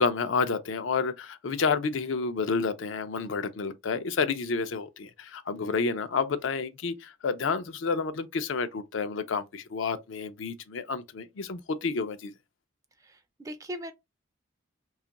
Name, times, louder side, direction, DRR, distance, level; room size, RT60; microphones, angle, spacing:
voice 1, 0.0-12.3, left 4 dB, 80° left, 0.5 m, -30 dB
voice 2, 13.0-13.9, equal, 15° right, 0.3 m, -39 dB
2.9 x 2.4 x 3.9 m
head